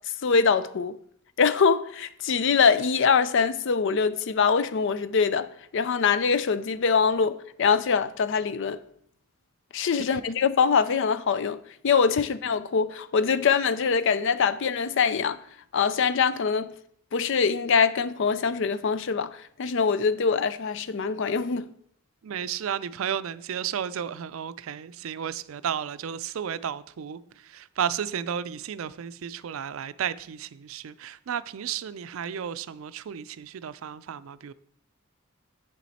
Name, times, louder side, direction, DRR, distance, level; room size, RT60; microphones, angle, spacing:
voice 1, 0.2-1.0 1.4-8.8 9.7-15.4 15.7-16.7 17.1-21.7, left 5 dB, 60° left, 0.5 m, -23 dB
voice 2, 22.2-34.5, right 8 dB, 75° right, 0.4 m, -33 dB
7.7 x 7.3 x 4.1 m
head